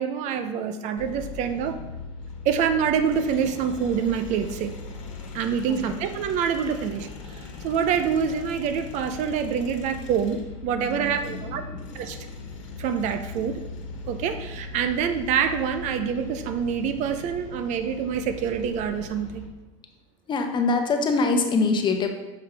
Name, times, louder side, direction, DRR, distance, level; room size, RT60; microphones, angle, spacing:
voice 1, 0.0-1.8 2.4-4.7 5.3-7.1 7.6-11.6 11.9-12.2 12.8-13.6 14.1-19.5, right 7 dB, 50° right, 9 dB, 0.6 m, -26 dB
sound 1, 1.0-19.5, left 3 dB, 75° left, 1.3 m, -39 dB
voice 2, 5.7-6.0 10.7-12.0 20.3-22.1, left 3 dB, 30° left, 5 dB, 0.8 m, -25 dB
6.8 x 5.5 x 3.4 m, 1.0 s
hypercardioid pair, 100°, 16 cm